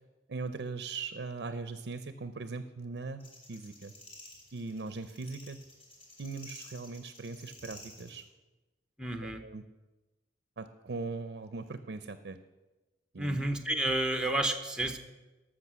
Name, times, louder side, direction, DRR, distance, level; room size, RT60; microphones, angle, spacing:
voice 1, 0.3-3.9 4.5-5.6 6.2-8.2 9.2-9.6 10.6-12.4 13.1-13.4, right 3 dB, 70° right, 11 dB, 0.6 m, -40 dB
sound 1, 3.2-8.2, left 1 dB, 35° left, 2.8 m, -52 dB
voice 2, 9.0-9.4 13.2-15.0, right 1 dB, 5° right, 6 dB, 0.8 m, -30 dB
13.5 x 6.4 x 6.2 m, 1.1 s
head